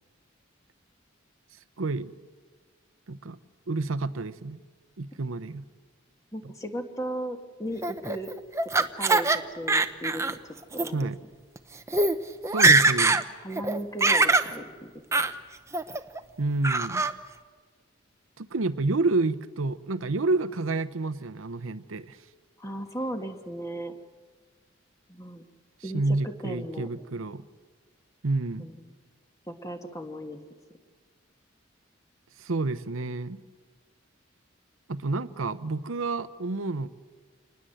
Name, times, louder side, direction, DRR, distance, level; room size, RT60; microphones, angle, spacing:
voice 1, 1.8-2.1 3.1-3.4 3.7-4.6 5.0-5.6 10.9-11.2 12.5-13.3 16.4-17.1 18.4-22.2 25.8-27.4 28.2-28.7 32.4-33.4 34.9-36.9, right 3 dB, 85° right, 13 dB, 0.8 m, -29 dB
voice 2, 6.3-8.3 8.7-10.4 10.7-11.1 13.4-15.2 22.6-23.9 25.1-25.4 25.8-26.9 28.6-28.9 29.5-30.4, right 1 dB, 15° left, 5 dB, 1.6 m, -36 dB
Laughter, 7.8-9.4 9.7-10.3 10.7-10.9 11.6-11.7 11.9-12.1 12.4-13.2 13.6-14.5 15.1-15.3 15.7-16.2 16.6-17.1, right 3 dB, 15° right, 0.7 m, -22 dB
28.0 x 20.0 x 7.8 m, 1.5 s
head